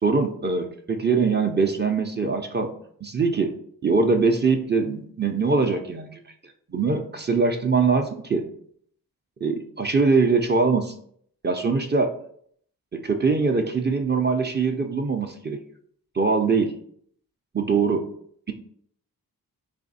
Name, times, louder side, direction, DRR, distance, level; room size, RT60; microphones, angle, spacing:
voice 1, 0.0-2.7 3.0-3.5 3.8-6.2 6.7-8.5 9.4-10.9 11.4-12.2 12.9-15.6 16.1-16.8 17.5-18.1, right 4 dB, 30° right, 4 dB, 0.5 m, -22 dB
3.5 x 3.2 x 4.1 m, 0.63 s
wide cardioid pair, 85°, 36 cm